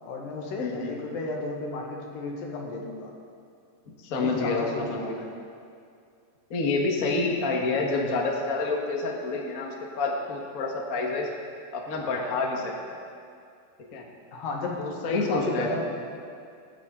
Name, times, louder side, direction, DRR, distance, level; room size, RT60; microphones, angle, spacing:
voice 1, 0.0-3.1 4.1-5.3 14.3-15.9, left 3 dB, 75° left, -1 dB, 3.3 m, -33 dB
voice 2, 0.6-1.0 4.0-5.2 6.5-11.3 11.7-13.0 13.9-14.0 14.8-15.8, left 3 dB, 50° left, 0 dB, 1.0 m, -28 dB
23.0 x 9.7 x 3.8 m, 2.4 s
omnidirectional pair, 4.0 m